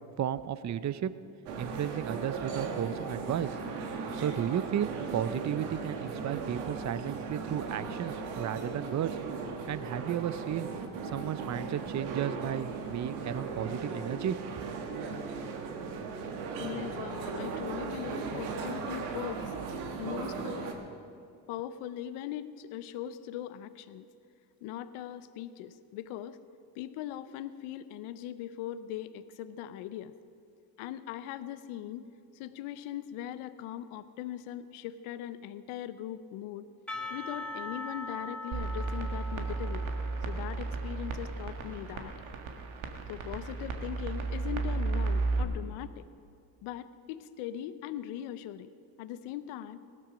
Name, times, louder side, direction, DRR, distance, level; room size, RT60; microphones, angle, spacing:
voice 1, 0.2-1.1 1.6-3.5 4.1-9.2 9.7-10.7 11.0-14.4 14.6-14.7, right 10 dB, 35° right, 15 dB, 0.6 m, -33 dB
sound 1, 1.5-20.7, right 4 dB, 90° right, 1.5 m, -37 dB
voice 2, 16.6-19.5 20.0-20.8 21.5-24.1 24.6-26.4 26.8-30.1 30.8-32.0 32.3-36.7 37.1-39.9 40.3-42.1 43.1-46.0 46.6-48.7 49.0-49.8, left 11 dB, 80° left, 14 dB, 0.8 m, -40 dB
Percussion / Church bell, 36.9-42.1, left 2 dB, ahead, 2.1 m, -42 dB
sound 2, 38.5-45.4, right 3 dB, 70° right, 1.8 m, -33 dB
17.0 x 12.5 x 5.1 m, 2.5 s
supercardioid pair, 60°, 50 cm